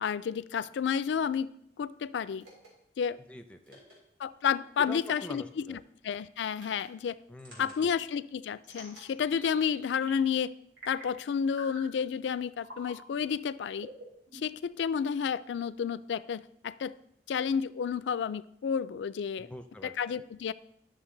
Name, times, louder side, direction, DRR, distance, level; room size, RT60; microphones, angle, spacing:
voice 1, 0.0-2.5 3.0-3.2 4.2-7.2 7.6-10.5 10.9-13.9 14.3-17.0 17.3-19.5 19.8-20.5, left 7 dB, 80° left, 17 dB, 0.3 m, -31 dB
sound 1, 2.4-2.7 3.6-3.9 5.0-5.3 6.5-6.8 7.4-7.8 8.6-9.7 10.0-10.4 10.8-11.1 11.5-11.9 12.6-13.0 13.8-14.7, right 1 dB, 85° right, 3.5 m, -47 dB
voice 2, 3.3-3.8 4.8-5.8 7.3-7.7 19.4-19.9, equal, 5° left, 7 dB, 0.6 m, -44 dB
11.0 x 6.6 x 3.8 m, 0.74 s
head